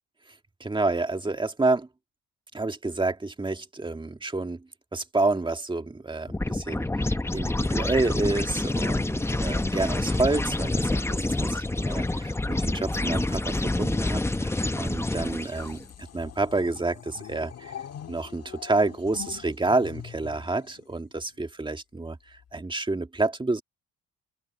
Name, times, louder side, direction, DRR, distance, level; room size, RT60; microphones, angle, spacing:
voice 1, 0.6-1.9 2.5-4.6 4.9-12.0 12.5-15.8 16.1-17.7 18.1-23.6, right 3 dB, 15° right, 1.8 m, -29 dB
sound 1, 6.3-15.7, left 2 dB, 10° left, 0.8 m, -27 dB
sound 2, 11.8-13.9 14.9-21.4 22.3-22.6, left 9 dB, 55° left, 1.7 m, -45 dB
open air
cardioid pair, 90°, 30 cm